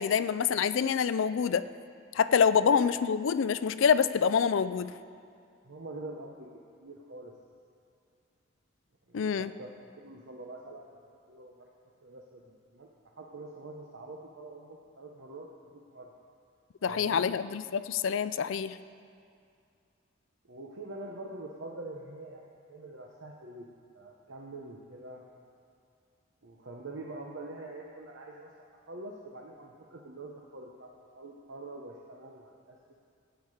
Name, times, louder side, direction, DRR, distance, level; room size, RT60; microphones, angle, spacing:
voice 1, 0.0-1.6 2.1-4.9 9.1-9.5 16.8-18.8, left 6 dB, 70° left, 14 dB, 0.4 m, -26 dB
voice 2, 5.6-6.5 6.8-7.3 9.1-9.7 10.0-11.7 12.0-12.9 13.2-16.1 16.8-17.3 18.4-18.5 20.5-23.7 23.9-25.2 26.4-32.8, right 2 dB, 65° right, -1 dB, 0.9 m, -45 dB
15.0 x 9.4 x 4.9 m, 2.4 s
head